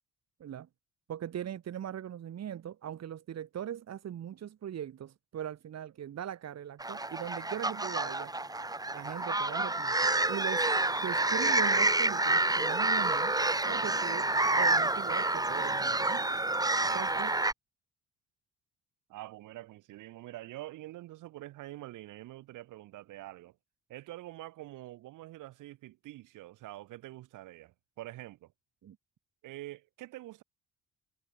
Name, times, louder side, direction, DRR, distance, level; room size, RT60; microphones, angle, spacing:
voice 1, 1.1-8.3 8.9-10.6 11.0-13.3 13.7-14.3 14.6-16.3 16.9-17.3 28.8-29.0, right 10 dB, 60° right, 2.1 m, -40 dB
sound 1, 6.8-17.5, right 2 dB, 10° right, 1.8 m, -28 dB
voice 2, 16.8-17.3 19.1-23.6 23.9-28.5 29.4-30.4, right 16 dB, 90° right, 3.6 m, -46 dB
cardioid pair, 90°, 30 cm